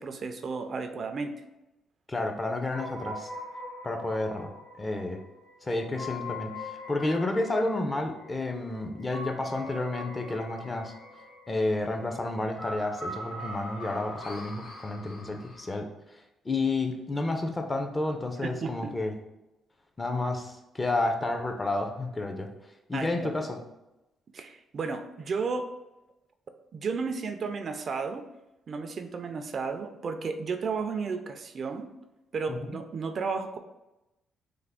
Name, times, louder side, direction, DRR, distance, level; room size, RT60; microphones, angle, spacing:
voice 1, 0.0-1.4 18.4-18.9 22.9-23.3 24.3-25.7 26.7-28.2 28.7-31.9 32.3-33.6, right 4 dB, 50° right, 7 dB, 0.3 m, -33 dB
voice 2, 2.1-3.3 3.8-4.5 4.8-5.2 5.6-10.9 11.5-19.1 20.0-22.5 22.9-23.6 32.5-32.6, left 2 dB, 20° left, 5 dB, 0.5 m, -31 dB
sound 1, 2.7-15.8, left 1 dB, 90° left, 1.4 m, -42 dB
3.4 x 2.0 x 3.4 m, 0.95 s
cardioid pair, 90°, 0 cm